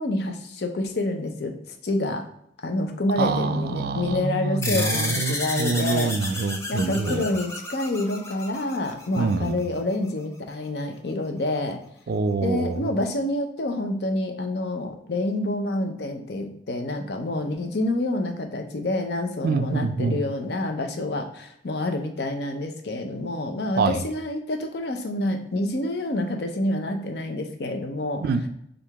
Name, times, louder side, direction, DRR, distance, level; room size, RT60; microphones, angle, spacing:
voice 1, 0.0-2.2 2.6-6.1 6.7-11.8 12.4-28.2, left 1 dB, 65° left, 5 dB, 0.6 m, -28 dB
voice 2, 3.2-7.2 9.1-9.6 12.1-12.9 19.4-20.2 23.8-24.0 28.2-28.5, right 4 dB, 55° right, 10 dB, 0.3 m, -25 dB
sound 1, 4.6-9.5, left 2 dB, 15° left, 0.6 m, -31 dB
4.6 x 2.5 x 3.4 m, 0.74 s
head